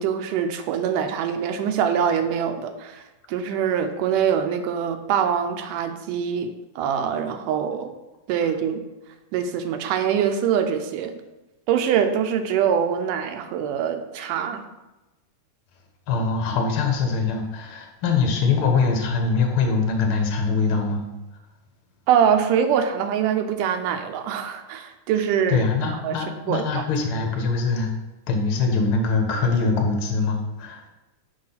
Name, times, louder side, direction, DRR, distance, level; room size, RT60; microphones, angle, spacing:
voice 1, 0.0-3.0 3.3-7.9 8.3-8.8 9.3-11.2 11.7-14.6 22.1-25.6 26.0-26.2 26.5-26.8, right 8 dB, 85° right, 7 dB, 2.2 m, -24 dB
voice 2, 16.1-21.0 25.5-27.9 28.3-30.9, left 4 dB, 60° left, 3 dB, 1.4 m, -23 dB
6.5 x 5.0 x 5.6 m, 1.0 s
omnidirectional pair, 3.7 m